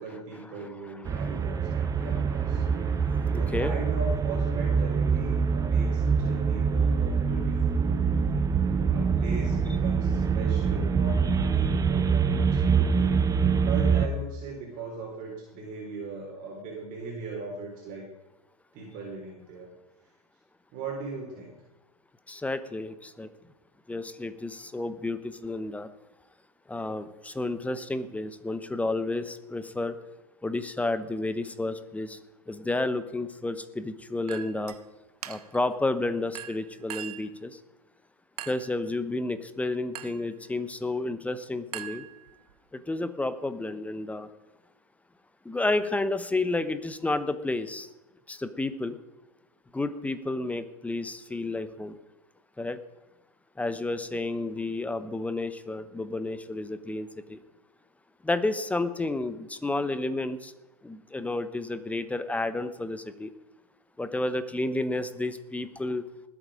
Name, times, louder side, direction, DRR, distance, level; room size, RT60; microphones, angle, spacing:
voice 1, 0.0-2.6 3.4-7.9 8.9-13.2 13.6-18.1 18.7-19.7 20.7-21.5, right 3 dB, 45° right, -2 dB, 4.2 m, -39 dB
sound 1, 1.1-14.1, right 6 dB, 20° right, 0.8 m, -25 dB
voice 2, 2.6-3.7 22.3-23.3 23.9-25.9 26.7-30.0 30.4-32.2 32.5-34.7 35.3-37.6 38.5-42.0 42.7-44.3 45.4-47.9 48.3-49.0 49.7-52.0 52.6-52.8 53.6-57.4 58.2-60.5 60.8-63.3 64.0-66.3, left 2 dB, 5° left, 12 dB, 1.0 m, -31 dB
Chink clink, 34.3-34.8 35.2-35.7 36.3-37.3 38.4-38.8 39.9-40.3 41.7-42.5, right 11 dB, 75° right, 1.0 m, -41 dB
19.5 x 8.5 x 5.1 m, 1.0 s
hypercardioid pair, 110°, 19 cm